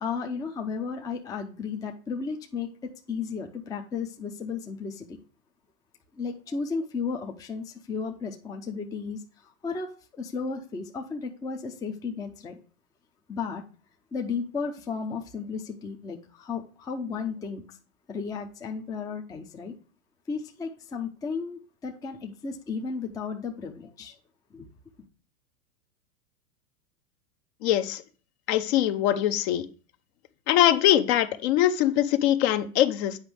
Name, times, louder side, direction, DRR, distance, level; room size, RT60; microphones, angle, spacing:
voice 1, 0.0-5.2 6.2-12.6 13.3-13.6 14.1-17.8 18.1-19.7 20.3-24.2 24.5-24.7, left 5 dB, 10° left, 0.5 m, -34 dB
voice 2, 27.6-28.0 28.5-29.7 30.5-33.2, left 12 dB, 45° left, 0.7 m, -22 dB
8.1 x 5.0 x 3.3 m
hypercardioid pair, 120°, 44 cm